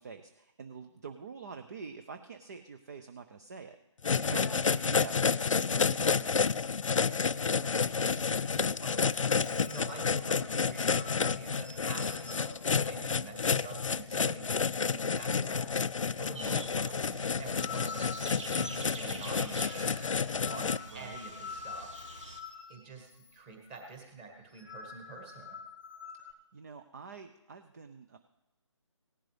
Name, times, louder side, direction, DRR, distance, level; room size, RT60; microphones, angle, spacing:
voice 1, 0.0-3.8 4.3-5.4 5.7-6.5 20.8-21.2 26.5-28.2, right 5 dB, 30° right, 8 dB, 0.6 m, -46 dB
sound 1, 4.0-20.8, left 5 dB, 80° left, 0.4 m, -30 dB
voice 2, 4.2-4.8 7.5-9.0 9.7-12.5 12.8-15.6 16.1-18.1 18.5-20.2 20.5-21.9 22.7-25.6, right 4 dB, 15° right, 1 dB, 1.9 m, -47 dB
sound 2, 8.5-14.5 14.8-14.9 15.2-15.7 16.0-23.4 23.6-23.9 24.3-26.3, left 5 dB, 15° left, 0.9 m, -48 dB
sound 3, 16.3-22.4, right 2 dB, 75° right, 2.1 m, -46 dB
18.0 x 11.0 x 3.4 m, 0.97 s
figure-of-eight pair, 155°, 16 cm